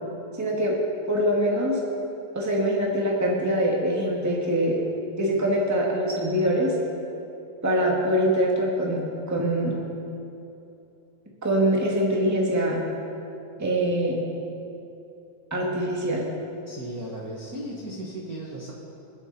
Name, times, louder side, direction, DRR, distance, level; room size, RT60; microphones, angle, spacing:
voice 1, 0.4-0.8 1.1-1.8 2.3-4.8 5.2-6.7 7.6-9.8 11.4-12.8 13.6-14.2 15.5-16.2, equal, 5° right, -3 dB, 1.7 m, -24 dB
voice 2, 16.7-18.7, right 1 dB, 40° right, -4 dB, 1.5 m, -36 dB
27.0 x 9.1 x 4.4 m, 2.8 s
omnidirectional pair, 3.6 m